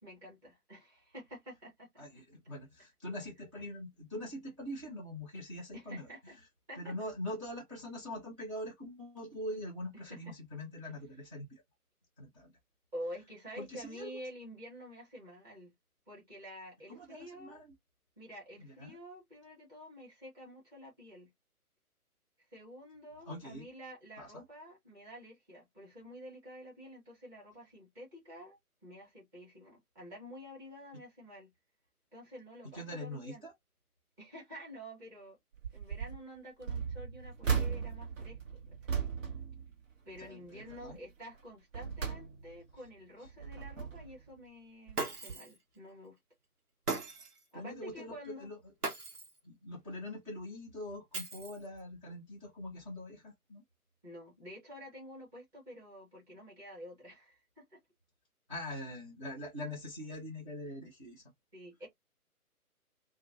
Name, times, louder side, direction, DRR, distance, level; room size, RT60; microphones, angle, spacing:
voice 1, 0.0-2.0 5.7-6.4 6.7-6.9 9.9-10.3 10.8-10.9 12.9-15.7 16.1-17.6 18.2-21.3 22.5-31.5 32.1-33.5 34.2-35.4 35.7-39.1 40.0-46.2 47.5-48.5 54.0-57.8 61.5-61.9, equal, 10° right, 0.8 m, -49 dB
voice 2, 2.0-6.1 6.8-11.6 12.2-12.5 13.6-14.1 16.9-17.7 18.6-19.0 23.3-23.7 24.2-24.4 32.7-33.5 40.2-41.0 47.5-48.6 49.4-53.6 58.5-61.2, left 1 dB, 25° right, 0.4 m, -43 dB
sound 1, 35.5-36.2 36.6-40.3 40.7-41.0 41.5-42.7 43.2-44.2 44.9-45.0 45.3-45.4, right 6 dB, 60° right, 1.0 m, -37 dB
Shatter, 45.0-45.6 46.9-47.4 48.8-49.4 51.1-51.8, right 3 dB, 80° right, 1.0 m, -38 dB
2.4 x 2.2 x 2.5 m
figure-of-eight pair, 135°, 45 cm